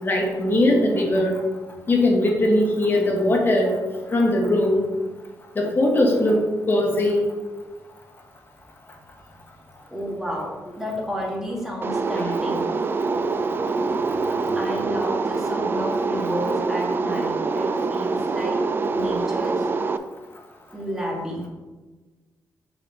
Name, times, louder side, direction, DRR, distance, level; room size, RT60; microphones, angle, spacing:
voice 1, 0.0-1.4 1.9-3.7 4.1-4.8 5.6-7.2, left 1 dB, 35° left, 0 dB, 1.4 m, -20 dB
voice 2, 9.9-12.8 14.5-18.6 18.9-19.7 20.7-21.5, equal, 5° right, -3 dB, 1.7 m, -31 dB
sound 1, 11.8-20.0, right 4 dB, 35° right, 0.3 m, -25 dB
5.7 x 4.3 x 4.7 m, 1.2 s
cardioid pair, 115°, 7 cm